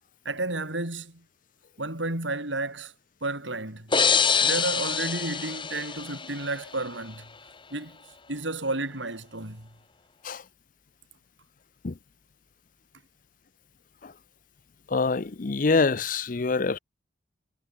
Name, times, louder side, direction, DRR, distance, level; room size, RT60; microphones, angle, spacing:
voice 1, 0.3-1.2 1.8-2.9 3.2-3.9 4.4-7.3 7.7-8.0 8.3-9.7, right 2 dB, 85° right, 7.1 m, -32 dB
sound 1, 3.9-6.7, left 6 dB, 25° left, 1.6 m, -25 dB
voice 2, 14.9-16.8, left 4 dB, 45° left, 0.6 m, -25 dB
head